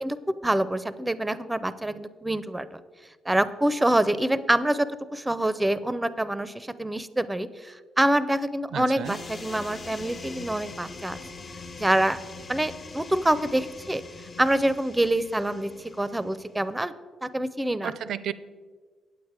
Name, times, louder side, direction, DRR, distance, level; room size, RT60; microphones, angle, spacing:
voice 1, 0.0-2.8 3.3-11.2 11.8-12.2 12.5-14.0 14.4-16.9 17.2-17.9, right 1 dB, 10° right, 15 dB, 0.5 m, -26 dB
voice 2, 8.7-9.2 17.8-18.3, right 9 dB, 70° right, 15 dB, 0.4 m, -32 dB
sound 1, 9.0-16.6, left 3 dB, 40° left, 0.7 m, -42 dB
8.9 x 8.0 x 4.7 m, 1.5 s
cardioid pair, 90°, 0 cm